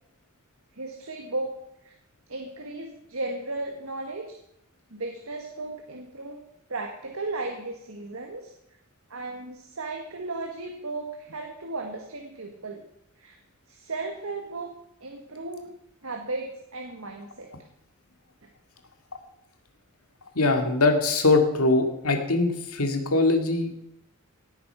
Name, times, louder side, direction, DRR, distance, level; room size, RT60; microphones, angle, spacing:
voice 1, 0.7-1.5 1.8-1.9 2.3-4.4 4.9-6.4 6.7-8.5 9.1-12.8 13.2-13.4 13.7-14.7 15.0-15.7 16.0-17.5, right 2 dB, 75° right, 3 dB, 1.7 m, -35 dB
voice 2, 20.3-23.8, left 3 dB, 85° left, 6 dB, 2.3 m, -22 dB
18.0 x 8.7 x 5.8 m, 0.79 s
head